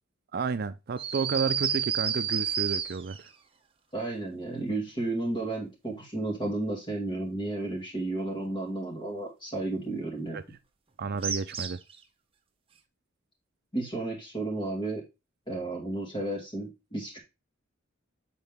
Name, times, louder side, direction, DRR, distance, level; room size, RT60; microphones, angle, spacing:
voice 1, 0.3-3.3 10.3-10.4 11.0-11.8, right 5 dB, 50° right, 0.5 m, -31 dB
sound 1, 1.0-3.3 11.2-11.9, right 8 dB, 30° right, 0.9 m, -30 dB
voice 2, 3.9-10.4 13.7-15.0 15.5-17.2, right 2 dB, 25° left, 2.5 m, -32 dB
7.7 x 4.0 x 3.5 m
head